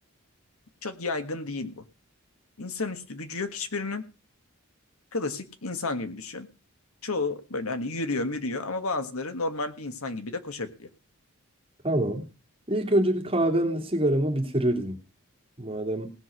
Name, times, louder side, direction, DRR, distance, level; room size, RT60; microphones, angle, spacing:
voice 1, 0.8-1.8 2.6-4.0 5.1-6.5 7.0-10.9, left 3 dB, 75° left, 9 dB, 1.6 m, -31 dB
voice 2, 11.8-12.3 12.7-15.0 15.6-16.1, right 1 dB, 25° right, 0 dB, 2.8 m, -25 dB
18.0 x 6.4 x 6.3 m, 0.32 s
head